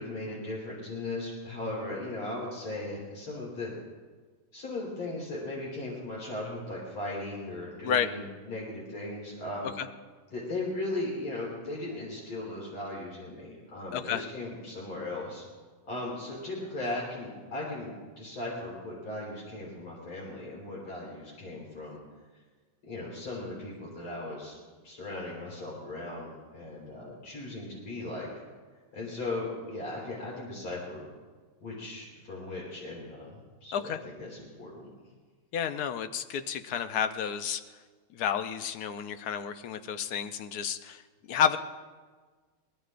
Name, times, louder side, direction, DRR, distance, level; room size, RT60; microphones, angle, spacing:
voice 1, 0.0-3.7 4.5-9.7 10.3-15.4 15.8-22.0 22.8-24.6 24.8-28.3 28.9-31.1 31.6-34.9, left 2 dB, 90° left, -4 dB, 5.0 m, -37 dB
voice 2, 13.9-14.2 33.7-34.0 35.5-37.6 38.1-41.0 41.3-41.6, left 8 dB, 65° left, 9 dB, 1.0 m, -30 dB
23.5 x 19.5 x 2.5 m, 1.4 s
omnidirectional pair, 2.3 m